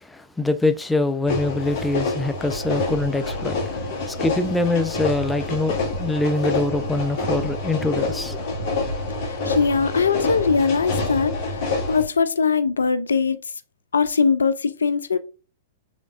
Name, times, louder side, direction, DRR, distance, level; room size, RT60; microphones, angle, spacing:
voice 1, 0.0-8.4, left 2 dB, 5° left, 0.5 m, -24 dB
sound 1, 1.3-12.0, left 2 dB, 50° left, 1.7 m, -27 dB
voice 2, 9.2-13.4 13.9-15.2, left 5 dB, 85° left, 0.4 m, -21 dB
5.1 x 3.6 x 2.5 m
hypercardioid pair, 115°, 0 cm